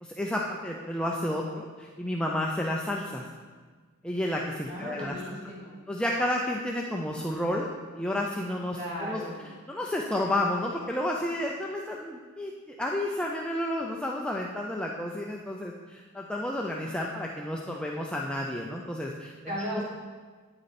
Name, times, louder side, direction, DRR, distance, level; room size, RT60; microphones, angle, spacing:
voice 1, 0.0-3.3 4.0-5.2 5.9-9.2 9.7-19.8, left 1 dB, 5° left, -1 dB, 0.5 m, -31 dB
voice 2, 4.7-5.8 8.7-9.4 19.5-19.8, equal, 30° right, -7 dB, 3.5 m, -36 dB
9.7 x 9.2 x 4.2 m, 1.5 s
head